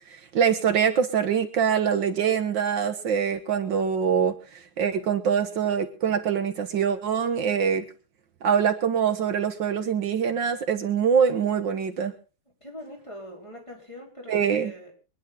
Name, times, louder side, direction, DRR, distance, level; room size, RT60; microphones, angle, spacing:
voice 1, 0.3-7.8 8.4-12.1 14.3-14.7, right 7 dB, 70° right, 6 dB, 2.0 m, -24 dB
voice 2, 12.6-14.9, equal, 15° left, -1 dB, 5.1 m, -42 dB
24.5 x 10.5 x 3.9 m, 0.34 s
omnidirectional pair, 2.1 m